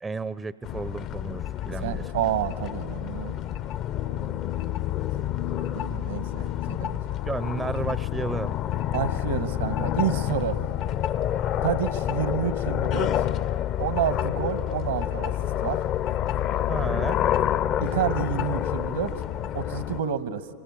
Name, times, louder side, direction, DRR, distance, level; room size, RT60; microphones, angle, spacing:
voice 1, 0.0-2.0 7.2-8.5 16.7-17.2, right 4 dB, 15° right, 16 dB, 0.5 m, -32 dB
sound 1, 0.6-20.0, left 11 dB, 40° left, 0.6 m, -28 dB
voice 2, 1.8-3.4 4.1-4.3 5.2-5.3 5.6-7.2 8.9-10.6 11.6-13.2 13.8-15.3 15.6-15.8 17.8-19.2 19.5-20.5, right 9 dB, 75° right, 12 dB, 1.2 m, -29 dB
24.0 x 24.0 x 9.5 m, 2.5 s
hypercardioid pair, 95°, 0 cm